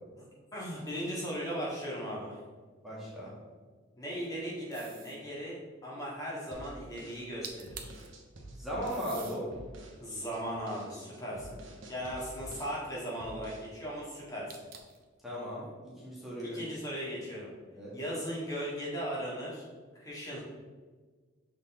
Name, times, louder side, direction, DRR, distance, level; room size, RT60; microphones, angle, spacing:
voice 1, 0.5-2.4 4.0-7.9 10.0-11.6 11.9-14.6 16.4-17.5 17.9-19.7 20.0-20.4, equal, 15° left, -6 dB, 1.6 m, -38 dB
voice 2, 2.8-3.4 8.5-9.5 15.2-16.6 17.7-18.0, equal, ahead, -8 dB, 1.4 m, -37 dB
sound 1, 4.7-5.2 7.2-7.3 7.4-8.1 8.9-9.4 10.1-11.5 14.5-15.1, right 7 dB, 45° right, 0.6 m, -47 dB
sound 2, 6.5-9.1 9.5-10.0 10.3-12.8 13.2-13.7, right 1 dB, 75° right, 1.0 m, -49 dB
6.5 x 4.1 x 3.7 m, 1.4 s
head